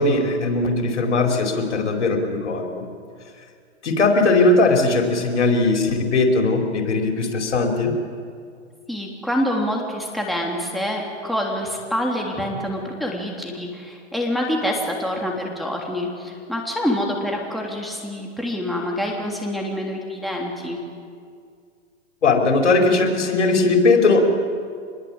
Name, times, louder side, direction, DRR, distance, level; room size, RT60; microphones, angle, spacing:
voice 1, 0.0-2.8 3.8-7.9 22.2-24.3, left 3 dB, 85° left, 2 dB, 4.9 m, -19 dB
voice 2, 8.9-20.8, equal, ahead, -1 dB, 3.2 m, -26 dB
25.5 x 21.5 x 9.0 m, 2.2 s
hypercardioid pair, 135°, 34 cm